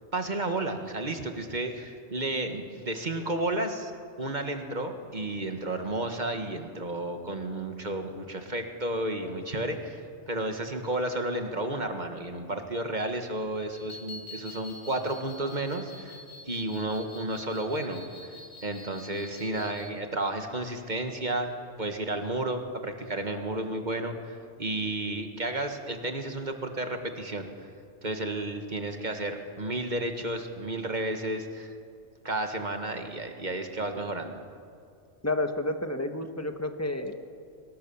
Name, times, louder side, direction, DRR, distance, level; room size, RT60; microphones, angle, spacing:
voice 1, 0.1-3.9 4.2-18.4 18.6-21.5 21.8-27.7 28.0-31.7 32.2-34.3, right 2 dB, 40° right, 5 dB, 1.8 m, -32 dB
sound 1, 13.7-19.9, left 2 dB, 85° left, 3.1 m, -47 dB
voice 2, 35.2-37.2, left 2 dB, 15° left, 6 dB, 1.3 m, -31 dB
24.0 x 18.5 x 7.2 m, 2.4 s
omnidirectional pair, 1.2 m